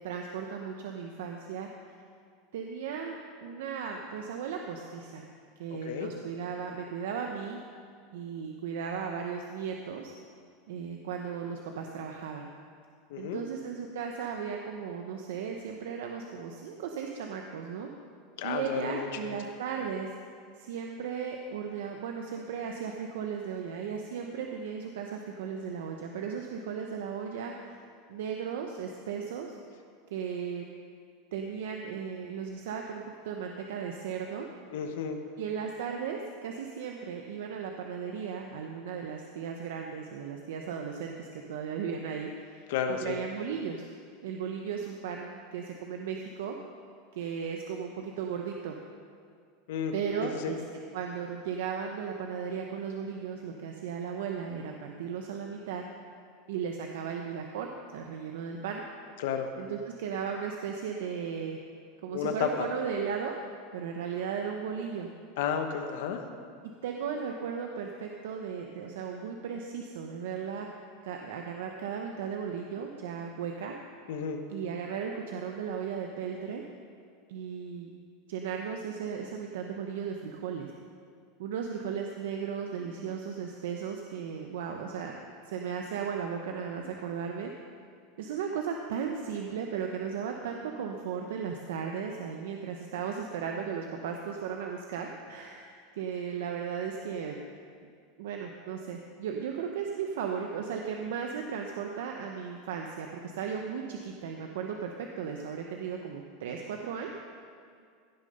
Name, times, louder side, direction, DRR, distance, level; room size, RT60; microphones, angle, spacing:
voice 1, 0.0-1.7 2.5-5.2 5.6-7.6 8.1-10.1 10.7-12.5 13.2-17.9 18.4-20.1 20.6-27.8 28.1-29.6 30.1-30.6 31.3-34.5 35.4-43.9 44.2-46.6 47.1-48.8 49.9-50.6 50.9-55.8 56.5-58.8 59.6-61.6 62.0-63.4 63.7-65.1 66.8-70.7 71.0-73.8 74.5-76.6 77.3-77.9 78.3-80.7 81.4-85.2 85.4-87.5 88.2-97.4 98.2-107.1, right 7 dB, 80° right, 2 dB, 0.8 m, -36 dB
voice 2, 13.1-13.4 18.4-19.3 34.7-35.2 42.7-43.2 49.7-49.9 50.2-50.5 59.2-59.5 62.1-62.7 65.4-66.2 74.1-74.4, left 7 dB, 65° left, 6 dB, 1.1 m, -32 dB
16.0 x 6.5 x 5.4 m, 2.2 s
supercardioid pair, 180°, 0 cm